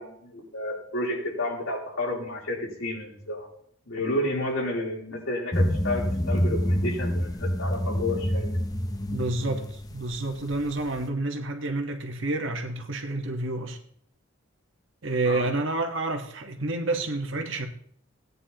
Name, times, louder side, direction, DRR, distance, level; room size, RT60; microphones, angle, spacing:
voice 1, 0.0-3.5 3.9-8.5 15.2-15.4, left 1 dB, 85° left, -2 dB, 3.4 m, -31 dB
sound 1, 5.5-11.0, equal, 20° left, 0.6 m, -27 dB
voice 2, 9.1-13.8 15.0-17.7, right 2 dB, 65° right, 4 dB, 1.3 m, -29 dB
17.0 x 9.5 x 2.9 m, 0.65 s
head